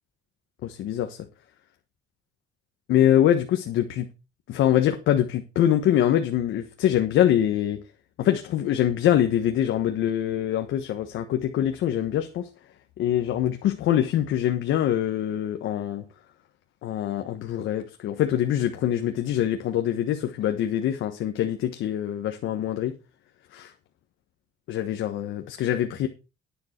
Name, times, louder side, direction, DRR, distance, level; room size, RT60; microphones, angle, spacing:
voice 1, 0.6-1.2 2.9-4.1 4.5-7.8 8.2-12.5 13.0-16.0 16.8-22.9 23.5-23.7 24.7-26.1, left 11 dB, 85° left, 1.3 m, -24 dB
10.5 x 9.6 x 4.5 m
cardioid pair, 90°, 20 cm